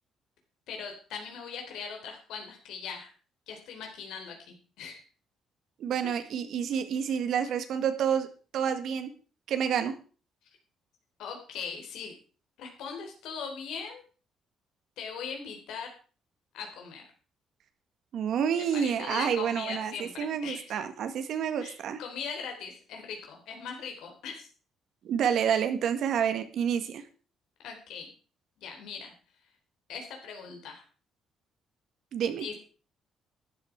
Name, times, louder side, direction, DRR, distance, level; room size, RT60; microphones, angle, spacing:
voice 1, 0.7-3.1 3.5-5.0 6.0-6.2 11.2-12.1 12.6-14.0 15.0-15.9 16.5-17.0 18.7-20.6 21.6-21.7 22.0-24.5 27.6-28.1 28.6-29.1 29.9-30.8 32.4-32.5, left 6 dB, 80° left, 2 dB, 3.9 m, -40 dB
voice 2, 5.8-8.3 8.5-9.1 9.5-10.0 18.1-22.0 25.0-27.0 32.1-32.5, right 8 dB, 55° right, 9 dB, 1.8 m, -29 dB
12.5 x 11.5 x 4.7 m, 0.38 s
cardioid pair, 165°, 0 cm